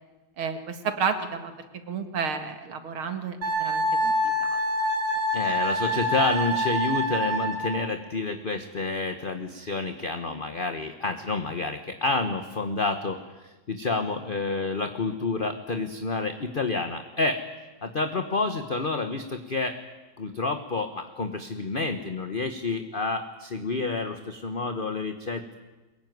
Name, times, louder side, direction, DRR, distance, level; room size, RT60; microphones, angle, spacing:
voice 1, 0.4-1.5 1.9-4.6, right 6 dB, 85° right, 8 dB, 2.8 m, -31 dB
Wind instrument woodwind instrument, 3.4-7.9, equal, 55° right, 4.5 m, -26 dB
voice 2, 5.3-17.4 17.8-19.8 20.2-25.6, left 3 dB, 30° left, 8 dB, 1.1 m, -29 dB
23.5 x 21.0 x 9.4 m, 1.2 s
omnidirectional pair, 2.2 m